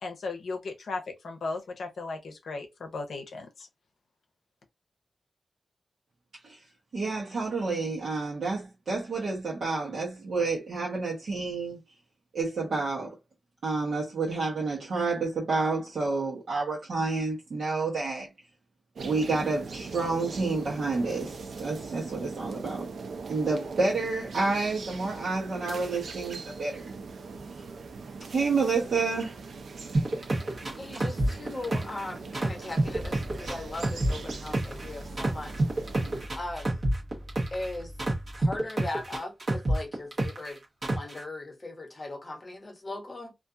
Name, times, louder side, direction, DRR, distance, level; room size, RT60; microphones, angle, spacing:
voice 1, 0.0-3.7, left 3 dB, 80° left, 0.6 m, -36 dB
voice 2, 6.9-11.8 12.3-13.1 13.6-18.3 19.0-22.9 23.3-27.0 28.3-29.4, right 3 dB, 70° right, 0.9 m, -29 dB
sound 1, 19.0-36.3, right 4 dB, 85° right, 0.4 m, -41 dB
sound 2, 29.9-32.0 32.3-34.8 35.2-37.7 38.0-40.5 40.8-41.2, right 1 dB, 45° right, 1.0 m, -27 dB
voice 3, 30.8-36.0 36.3-36.9 37.5-37.9 38.4-43.3, left 2 dB, 30° left, 1.0 m, -39 dB
Car / Engine starting, 32.4-38.6, equal, 15° right, 1.0 m, -44 dB
2.4 x 2.3 x 2.6 m
wide cardioid pair, 135°, 0 cm